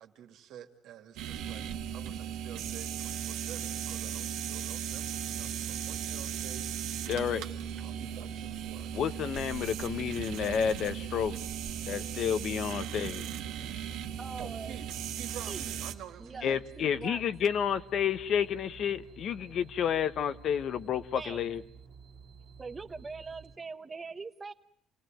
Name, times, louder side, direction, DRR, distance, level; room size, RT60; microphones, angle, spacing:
voice 1, 0.0-1.6 1.9-6.7 7.8-8.9 14.4-16.7, right 10 dB, 70° right, 2.4 m, -49 dB
sound 1, 1.2-15.9, right 9 dB, 90° right, 1.8 m, -37 dB
sound 2, 4.8-23.6, right 6 dB, 55° right, 2.4 m, -53 dB
voice 2, 7.1-7.4 8.9-11.4 11.9-13.3 16.4-21.6, left 8 dB, 55° left, 1.1 m, -30 dB
voice 3, 14.2-14.8 15.5-15.7 16.2-17.3 21.1-21.4 22.6-24.5, right 4 dB, 20° right, 1.2 m, -42 dB
28.0 x 19.0 x 9.2 m
cardioid pair, 125°, 0 cm